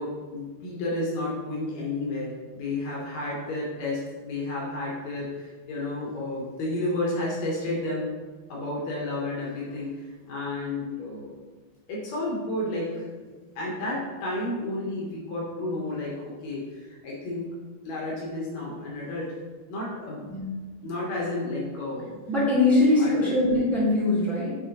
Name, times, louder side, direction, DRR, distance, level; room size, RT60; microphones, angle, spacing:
voice 1, 0.0-8.1 8.5-11.3 11.9-13.0 13.5-17.5 17.8-19.3 19.7-20.2 20.8-22.2 22.8-23.4, left 2 dB, 85° left, -5 dB, 1.5 m, -31 dB
voice 2, 22.3-24.6, left 2 dB, 50° right, -8 dB, 0.8 m, -22 dB
11.0 x 3.7 x 3.0 m, 1.4 s
omnidirectional pair, 5.1 m